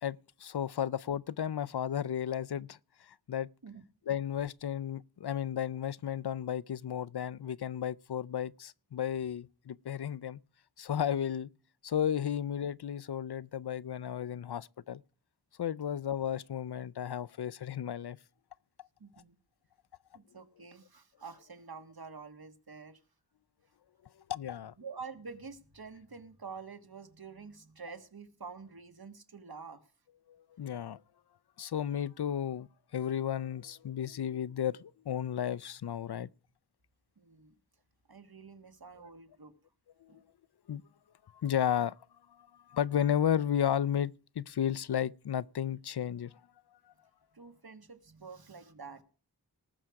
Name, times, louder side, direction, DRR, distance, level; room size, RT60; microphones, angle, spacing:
voice 1, 0.0-3.5 4.1-10.4 10.8-11.5 11.8-15.0 15.6-18.2 24.3-24.7 30.3-31.0 31.6-32.7 32.9-36.3 40.0-40.2 40.7-40.8 41.3-42.0 42.4-46.3, left 9 dB, 75° left, 0.5 m, -33 dB
voice 2, 19.0-19.4 20.1-23.0 24.8-29.9 37.2-37.6 38.1-39.5 40.1-40.2 47.3-49.0, right 5 dB, 65° right, 1.6 m, -48 dB
19.0 x 6.4 x 4.7 m
wide cardioid pair, 60°, 39 cm